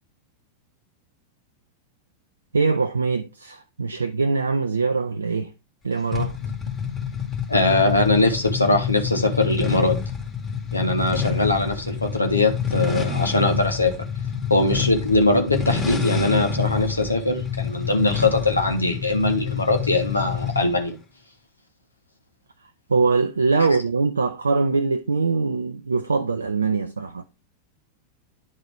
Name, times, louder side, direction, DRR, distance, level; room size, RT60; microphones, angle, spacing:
voice 1, 2.5-5.5 5.8-6.4 22.9-27.2, right 4 dB, 75° right, 0.4 m, -22 dB
sound 1, 6.1-20.8, left 7 dB, 25° left, 2.0 m, -27 dB
voice 2, 7.5-10.0 10.7-14.0 14.5-21.0, left 2 dB, 80° left, 1.1 m, -21 dB
10.5 x 4.0 x 3.4 m
figure-of-eight pair, 90°, 0 cm